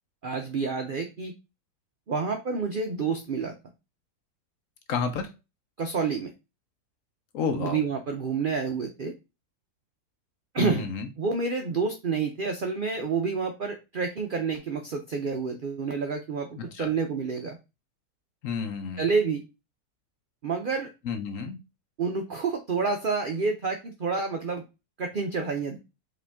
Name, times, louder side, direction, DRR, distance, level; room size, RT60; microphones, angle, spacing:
voice 1, 0.2-1.3 2.1-3.6 5.8-6.3 7.5-9.1 10.5-10.9 11.2-17.6 19.0-19.4 20.4-20.9 22.0-24.6 25.0-25.8, right 5 dB, 75° right, 4 dB, 0.4 m, -29 dB
voice 2, 4.9-5.3 7.3-7.8 10.6-11.1 16.6-16.9 18.4-19.0 21.0-21.6, left 5 dB, 65° left, 7 dB, 1.0 m, -30 dB
5.0 x 3.0 x 3.4 m, 0.26 s
omnidirectional pair, 1.7 m